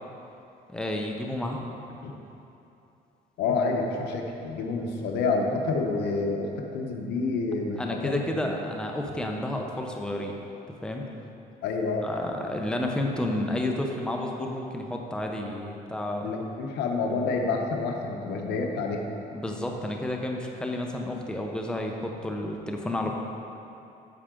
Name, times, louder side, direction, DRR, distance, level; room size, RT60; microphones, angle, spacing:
voice 1, 0.7-1.6 7.8-10.3 10.8-11.0 12.0-16.4 19.3-23.1, left 1 dB, 5° left, 1 dB, 0.8 m, -31 dB
voice 2, 3.4-8.5 11.6-12.1 16.2-19.0, left 3 dB, 85° left, 2 dB, 0.9 m, -28 dB
9.6 x 6.4 x 3.7 m, 2.8 s
cardioid pair, 110°, 17 cm